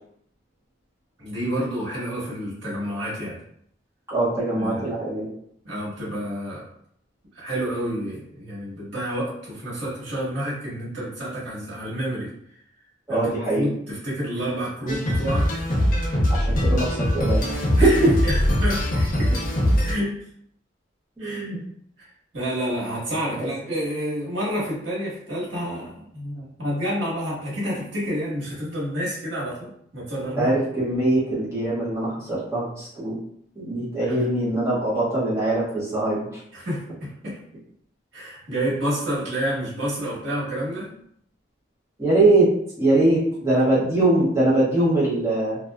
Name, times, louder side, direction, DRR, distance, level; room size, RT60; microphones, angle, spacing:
voice 1, 1.2-3.4 4.6-4.9 5.6-6.7 7.3-12.3 13.1-15.5 17.8-19.3 19.8-20.2 21.2-21.5 22.0-22.1 22.3-30.5 36.5-37.4 38.1-40.9 43.8-43.9, equal, 85° right, -7 dB, 1.3 m, -29 dB
voice 2, 4.1-5.3 13.1-13.6 16.3-18.1 21.2-21.6 23.4-23.5 30.4-33.2 33.5-36.4 42.0-42.5 42.8-45.6, right 2 dB, 15° right, -10 dB, 0.9 m, -22 dB
sound 1, 14.9-19.9, equal, 45° left, 0.6 m, -22 dB
2.5 x 2.3 x 2.2 m, 0.68 s
head